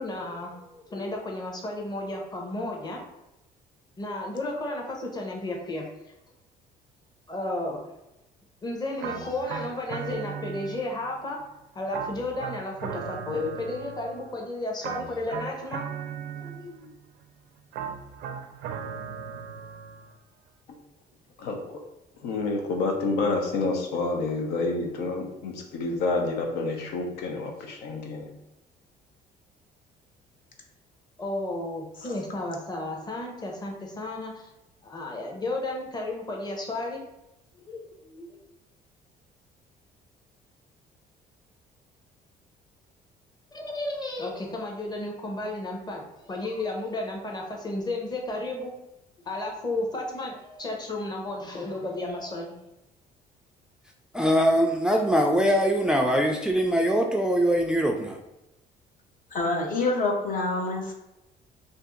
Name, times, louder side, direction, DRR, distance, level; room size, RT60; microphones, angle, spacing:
voice 1, 0.0-3.0 4.0-6.1 7.3-7.8 8.6-11.4 11.7-15.8 16.4-16.9 31.2-34.5 34.8-37.0 37.5-38.4 43.5-48.8 49.3-52.5, left 2 dB, 25° left, 0 dB, 0.8 m, -33 dB
sound 1, 9.0-11.1 11.9-14.3 14.8-16.9 17.7-20.1, right 7 dB, 75° right, 0.4 m, -37 dB
voice 2, 21.4-21.8 22.2-28.3, left 3 dB, 90° left, 2 dB, 0.6 m, -29 dB
voice 3, 54.1-58.2, equal, 5° right, 2 dB, 0.3 m, -22 dB
voice 4, 59.3-60.9, left 2 dB, 55° left, 2 dB, 0.7 m, -27 dB
2.6 x 2.5 x 3.7 m, 0.92 s
cardioid pair, 110°, 17 cm